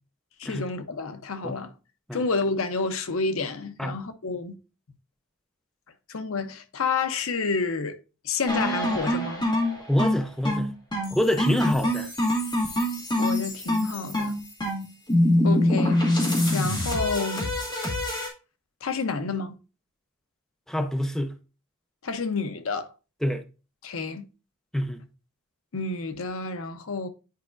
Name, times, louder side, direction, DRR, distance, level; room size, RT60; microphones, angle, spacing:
voice 1, 0.4-1.7 2.1-4.6 6.1-8.0 8.2-9.5 13.2-14.4 15.4-16.0 16.5-17.5 18.8-19.6 22.0-22.9 23.8-24.2 25.7-27.1, left 4 dB, 70° left, 0.7 m, -29 dB
sound 1, 8.5-18.3, left 1 dB, 20° left, 1.9 m, -25 dB
voice 2, 9.9-10.7 11.1-12.1 20.7-21.3 23.2-23.4 24.7-25.0, equal, ahead, 0.5 m, -26 dB
9.3 x 4.7 x 2.5 m
head